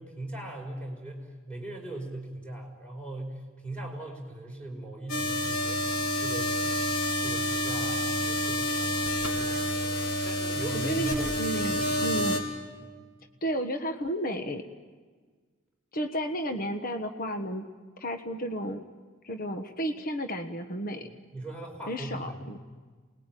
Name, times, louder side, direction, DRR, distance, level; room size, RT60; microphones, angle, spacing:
voice 1, 0.0-6.6 7.2-8.9 9.3-9.6 10.2-11.2 11.5-12.3 12.8-12.9 21.3-22.3, right 1 dB, 5° left, 1 dB, 4.9 m, -40 dB
sound 1, 5.1-12.4, equal, 85° left, 4.0 m, -29 dB
voice 2, 10.7-12.5 13.4-14.6 15.9-17.7 18.0-18.8 19.2-21.1 21.9-22.6, equal, 45° left, 7 dB, 1.3 m, -32 dB
28.5 x 20.5 x 9.1 m, 1.5 s
head